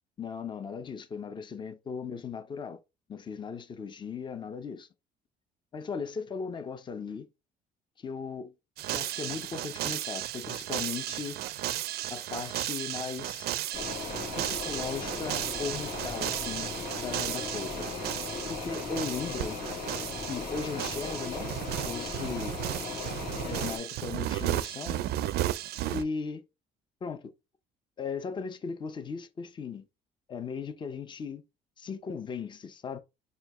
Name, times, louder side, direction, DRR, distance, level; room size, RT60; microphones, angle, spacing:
voice 1, 0.2-2.8 3.1-4.9 5.7-7.3 8.0-8.5 8.9-11.4 12.1-13.5 14.4-17.9 18.5-19.6 20.3-21.5 21.9-22.6 23.3-25.0 25.9-26.4 27.0-27.3 28.0-29.8 30.3-31.4 31.8-33.0, left 5 dB, 30° left, 0.6 m, -37 dB
sound 1, 8.8-26.0, right 13 dB, 70° right, 0.4 m, -34 dB
sound 2, 13.7-23.8, left 4 dB, 55° left, 1.7 m, -37 dB
4.5 x 2.3 x 3.5 m
cardioid pair, 110°, 17 cm